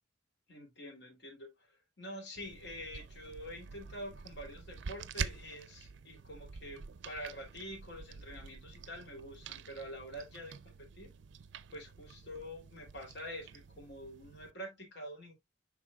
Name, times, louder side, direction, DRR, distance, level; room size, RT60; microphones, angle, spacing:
voice 1, 0.5-11.1 11.7-15.3, equal, 65° left, 2.7 m, -46 dB
sound 1, 2.4-14.5, right 6 dB, 70° right, 0.5 m, -47 dB
11.0 x 3.8 x 2.3 m
head